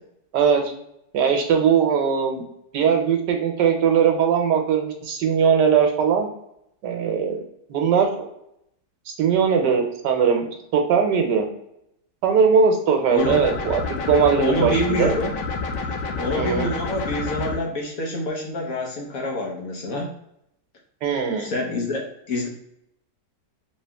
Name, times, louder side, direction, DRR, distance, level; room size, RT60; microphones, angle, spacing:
voice 1, 1.1-2.4 2.7-6.3 6.8-7.4 7.7-8.3 9.1-10.5 10.7-11.5 12.2-15.2 16.3-16.7 21.0-21.5, right 6 dB, 75° right, 4 dB, 1.3 m, -20 dB
voice 2, 13.1-13.4 14.4-15.3 16.2-20.1 21.4-22.0 22.3-22.5, left 1 dB, 60° left, -1 dB, 1.1 m, -26 dB
sound 1, 13.2-17.6, left 4 dB, 80° left, 1.3 m, -29 dB
3.1 x 2.9 x 3.4 m, 0.77 s
omnidirectional pair, 1.9 m